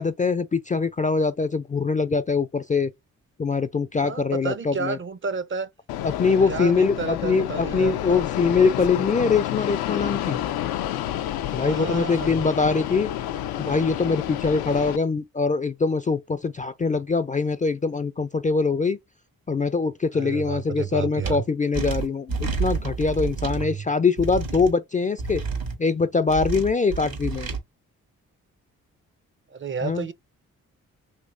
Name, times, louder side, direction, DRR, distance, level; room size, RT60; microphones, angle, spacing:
voice 1, 0.0-2.9 3.4-5.0 6.0-10.4 11.5-13.1 13.6-19.0 19.5-25.4 25.8-27.5 29.8-30.0, left 4 dB, 20° left, 0.4 m, -23 dB
voice 2, 3.9-5.7 6.5-8.0 11.6-12.4 20.1-21.5 23.6-23.8 29.5-30.1, right 5 dB, 35° right, 0.5 m, -31 dB
Fixed-wing aircraft airplane, 5.9-15.0, left 12 dB, 75° left, 0.5 m, -29 dB
sound 1, 21.2-21.3 21.7-23.6 24.2-24.7 25.2-25.8 26.3-27.6, right 4 dB, 70° right, 1.4 m, -29 dB
3.1 x 3.0 x 2.5 m
supercardioid pair, 40°, 37 cm